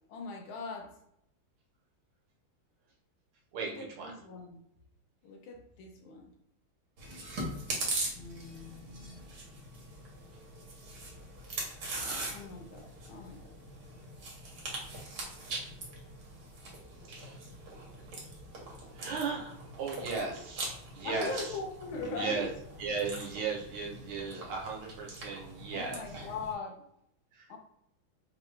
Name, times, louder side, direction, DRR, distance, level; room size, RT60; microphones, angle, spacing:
voice 1, 0.1-1.0 3.6-4.6 5.2-6.3 8.1-9.2 12.3-13.5 21.0-22.5 25.7-26.8 27.5-27.6, left 3 dB, 75° left, 2 dB, 1.5 m, -40 dB
voice 2, 3.5-4.1 17.1-17.4 18.9-21.6 21.9-22.5 22.8-26.0 27.3-27.5, right 5 dB, 80° right, -1 dB, 1.9 m, -36 dB
Chewing mastication, 7.0-26.5, right 2 dB, 55° right, 1.6 m, -42 dB
4.3 x 2.9 x 3.2 m, 0.75 s
omnidirectional pair, 2.4 m